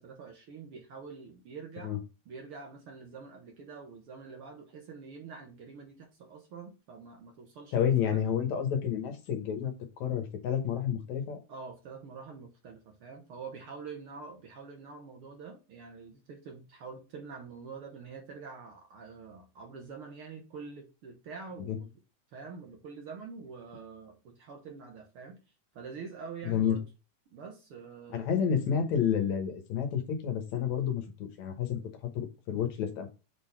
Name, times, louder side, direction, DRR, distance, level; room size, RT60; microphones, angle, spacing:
voice 1, 0.0-8.2 11.5-21.9 22.3-25.4 25.7-26.8 27.3-28.4, right 5 dB, 60° right, 3 dB, 1.7 m, -46 dB
voice 2, 7.7-11.4 21.7-21.8 26.5-26.8 28.1-31.8 32.1-33.1, left 8 dB, 75° left, 5 dB, 2.4 m, -30 dB
6.3 x 3.8 x 4.4 m, 0.31 s
omnidirectional pair, 3.3 m